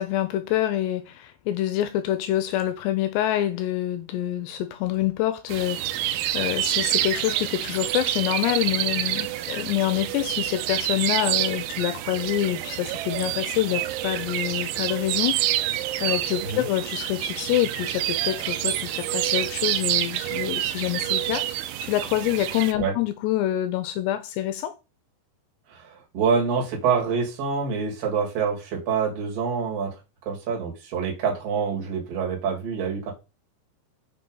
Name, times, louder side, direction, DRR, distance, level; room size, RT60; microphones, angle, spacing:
voice 1, 0.0-15.6 16.0-21.5 21.8-24.7, left 13 dB, 80° left, 2.6 m, -26 dB
sound 1, 5.5-22.7, right 13 dB, 85° right, 3.0 m, -27 dB
voice 2, 25.7-30.0 30.3-33.1, right 6 dB, 45° right, 2.7 m, -26 dB
6.7 x 4.2 x 5.4 m
omnidirectional pair, 5.2 m